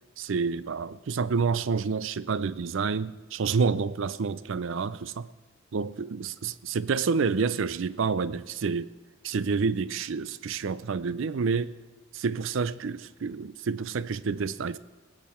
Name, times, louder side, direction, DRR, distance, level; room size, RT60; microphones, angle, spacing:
voice 1, 0.2-5.3 5.7-8.9 9.2-11.7 12.1-14.8, right 5 dB, 65° right, 0.4 m, -28 dB
18.5 x 8.5 x 4.4 m
head